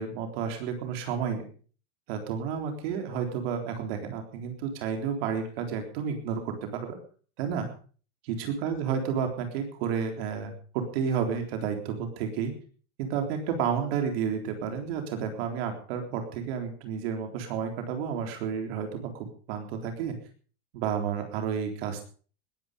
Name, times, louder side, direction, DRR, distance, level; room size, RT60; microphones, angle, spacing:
voice 1, 0.0-1.4 2.1-7.0 7.4-7.7 8.2-12.5 13.0-20.2 20.7-22.0, right 7 dB, 65° right, 5 dB, 3.9 m, -31 dB
20.0 x 10.5 x 5.3 m, 0.42 s
supercardioid pair, 140°, 33 cm